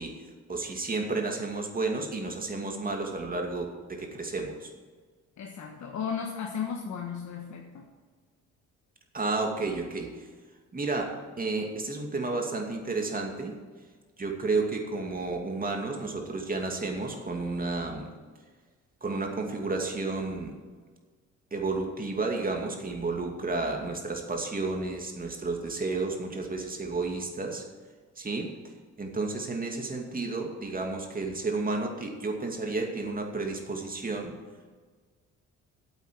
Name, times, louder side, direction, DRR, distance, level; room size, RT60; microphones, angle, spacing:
voice 1, 0.0-4.7 9.1-10.3 10.7-13.5 14.2-18.1 19.0-20.5 21.5-27.7 28.2-28.6 29.0-34.4, right 3 dB, 30° right, 2 dB, 2.5 m, -32 dB
voice 2, 5.4-7.8, left 7 dB, 70° left, 1 dB, 1.5 m, -35 dB
8.8 x 8.3 x 9.3 m, 1.5 s
cardioid pair, 90°, 30 cm